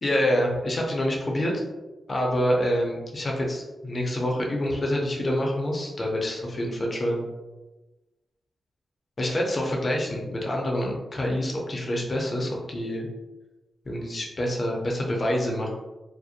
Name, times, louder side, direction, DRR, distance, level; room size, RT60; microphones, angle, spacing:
voice 1, 0.0-1.5 2.1-7.3 9.2-13.1 13.9-15.7, equal, 35° left, -1 dB, 0.5 m, -26 dB
2.5 x 2.0 x 2.6 m, 1.1 s
wide cardioid pair, 135°, 0 cm